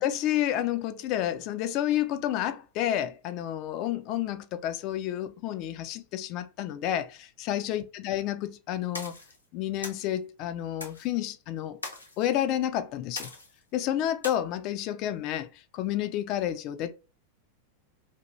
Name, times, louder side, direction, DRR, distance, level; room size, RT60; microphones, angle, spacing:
voice 1, 0.0-9.1 9.5-11.8 12.2-13.3 13.7-16.9, left 12 dB, 40° left, 0.3 m, -30 dB
sound 1, 8.9-9.4 9.8-10.1 10.8-11.1 11.8-12.2 13.2-13.6 14.2-14.3, left 2 dB, 85° left, 0.7 m, -39 dB
2.7 x 2.4 x 3.0 m
figure-of-eight pair, 90°, 0 cm